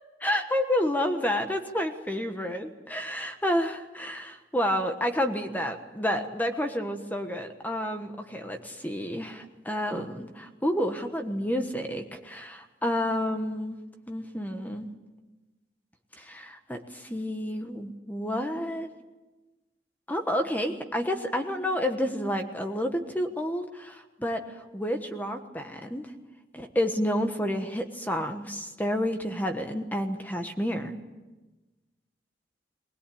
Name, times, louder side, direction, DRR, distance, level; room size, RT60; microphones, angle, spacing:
voice 1, 0.2-13.8 14.1-14.9 16.2-18.9 20.1-26.1 26.5-30.9, equal, 10° left, 5 dB, 1.3 m, -30 dB
21.0 x 20.0 x 8.7 m, 1.2 s
head